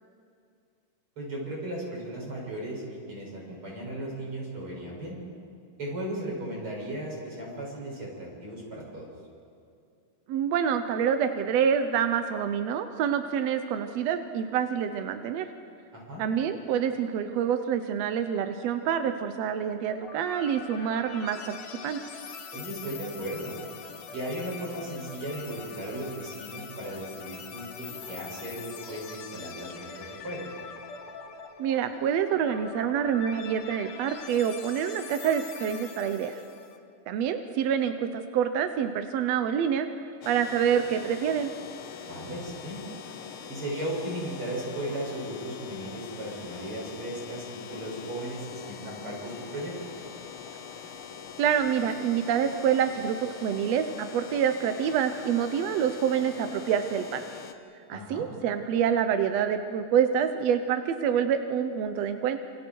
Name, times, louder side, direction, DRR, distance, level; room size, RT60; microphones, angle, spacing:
voice 1, 1.2-5.2 5.8-9.1 15.9-16.2 22.5-23.6 24.1-30.5 42.0-42.8 43.5-49.7 57.9-58.2, right 1 dB, 40° right, -3 dB, 7.3 m, -36 dB
voice 2, 10.3-15.5 16.2-21.6 21.8-22.0 31.6-36.4 37.1-39.9 40.2-41.5 51.4-57.2 57.9-62.4, right 8 dB, 75° right, 8 dB, 1.6 m, -27 dB
sound 1, 19.9-36.8, left 6 dB, 60° left, 2.2 m, -43 dB
sound 2, 40.2-57.5, left 7 dB, 75° left, 1.2 m, -43 dB
29.5 x 27.0 x 4.6 m, 2.4 s
omnidirectional pair, 3.8 m